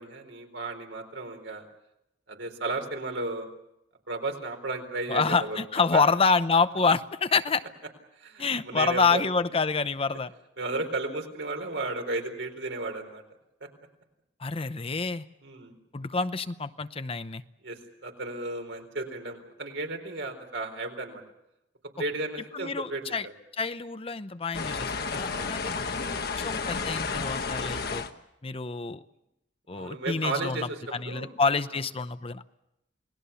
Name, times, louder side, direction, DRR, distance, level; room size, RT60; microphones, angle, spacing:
voice 1, 0.0-1.7 2.3-3.5 4.1-5.6 5.9-6.1 8.1-9.2 10.6-13.2 15.4-15.8 17.6-21.2 22.0-23.3 25.3-25.5 29.7-30.8 31.0-31.3, right 2 dB, 80° right, 4 dB, 4.2 m, -34 dB
voice 2, 5.1-7.6 8.4-10.3 14.4-15.2 15.9-17.4 22.5-23.3 23.6-28.0 28.4-29.0 29.7-32.4, left 4 dB, 30° left, 12 dB, 0.8 m, -27 dB
sound 1, 24.5-28.1, left 4 dB, 60° left, 1.3 m, -31 dB
28.5 x 19.5 x 7.0 m, 0.86 s
head